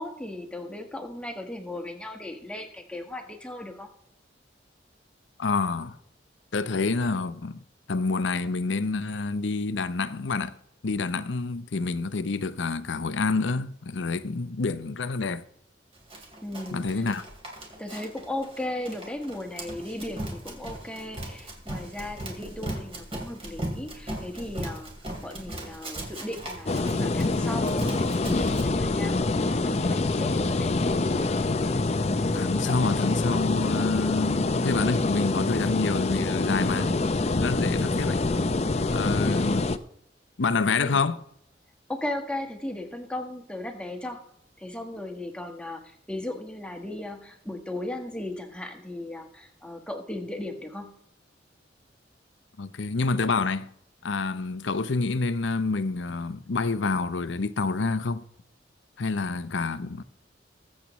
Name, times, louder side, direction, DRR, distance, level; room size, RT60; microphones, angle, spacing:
voice 1, 0.0-3.9 16.4-16.8 17.8-24.9 25.2-30.8 40.6-41.0 41.9-44.2 44.6-45.8 46.1-50.9, left 1 dB, 5° left, 1.2 m, -36 dB
voice 2, 5.4-6.0 6.5-7.6 7.9-10.5 10.8-15.4 16.7-17.3 32.3-37.0 37.3-38.2 38.9-39.7 40.4-41.2 52.6-53.7 54.0-58.2 59.0-60.0, left 4 dB, 85° left, 0.7 m, -27 dB
Run, 16.1-28.6, right 1 dB, 30° right, 2.5 m, -38 dB
sound 1, 26.7-39.8, left 2 dB, 35° left, 0.5 m, -26 dB
22.0 x 7.5 x 3.0 m
head